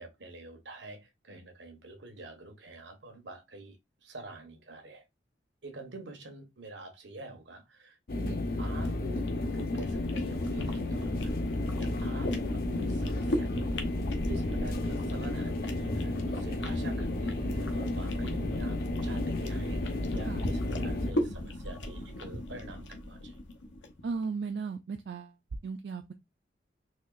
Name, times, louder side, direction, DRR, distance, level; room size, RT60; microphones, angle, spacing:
voice 1, 0.0-5.0 5.6-11.3 11.7-13.9 14.3-23.4, right 2 dB, 85° right, 1.1 m, -47 dB
sound 1, 8.1-21.1, left 2 dB, 55° left, 0.7 m, -32 dB
sound 2, 8.8-24.0, left 1 dB, 90° left, 0.8 m, -37 dB
voice 2, 24.0-25.4 25.6-26.1, right 5 dB, 65° right, 0.4 m, -36 dB
4.2 x 2.9 x 2.4 m
head